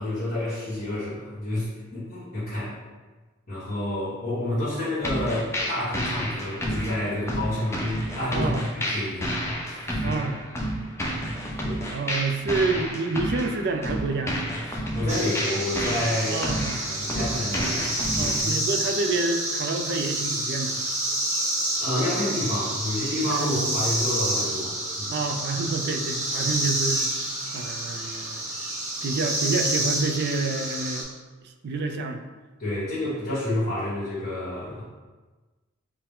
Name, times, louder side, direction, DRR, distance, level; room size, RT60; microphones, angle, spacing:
voice 1, 0.0-2.7 3.5-9.3 9.7-10.2 11.6-11.8 14.6-18.6 21.8-25.2 32.6-34.8, left 1 dB, 55° left, -13 dB, 1.5 m, -29 dB
sound 1, 5.0-18.4, equal, 15° left, 0.5 m, -30 dB
voice 2, 8.3-8.6 10.0-10.4 11.9-14.4 16.3-16.8 18.2-20.9 23.3-23.7 25.1-27.3 27.5-28.4 29.0-31.1 31.4-32.2, right 3 dB, 55° right, 5 dB, 0.4 m, -28 dB
sound 2, 15.1-31.0, right 1 dB, 35° right, 0.8 m, -29 dB
4.4 x 2.1 x 3.6 m, 1.3 s
head